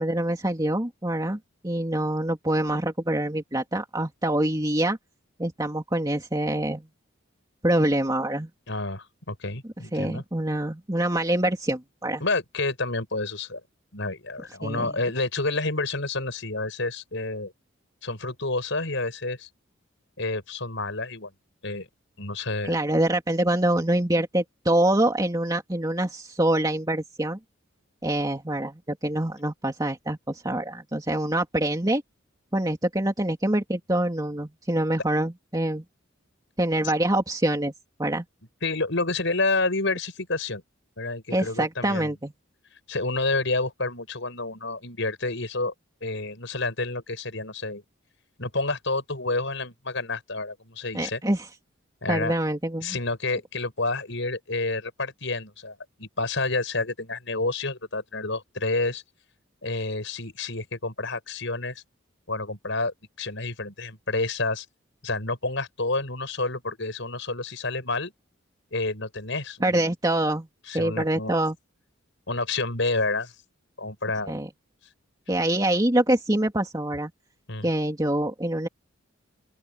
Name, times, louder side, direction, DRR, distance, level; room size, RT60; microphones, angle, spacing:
voice 1, 0.0-5.0 5.4-6.9 7.6-8.5 9.9-12.2 14.6-15.0 22.6-27.4 28.0-32.0 32.5-35.8 36.6-37.7 38.0-38.2 41.3-42.3 50.9-51.5 52.1-53.0 69.6-70.5 70.7-71.5 74.3-74.5 75.3-77.1 77.6-78.7, right 1 dB, 20° right, 2.7 m, -25 dB
voice 2, 8.7-10.2 12.2-13.6 13.9-17.5 18.0-19.5 20.2-21.3 21.6-21.9 22.2-22.7 38.6-40.6 41.0-42.1 42.9-45.7 46.0-47.8 48.4-51.2 52.0-52.3 52.8-59.0 59.6-61.8 62.3-64.7 65.0-68.1 68.7-69.9 70.7-71.3 72.3-73.3 73.8-74.3 77.5-77.7, left 3 dB, 65° left, 7.2 m, -29 dB
open air
head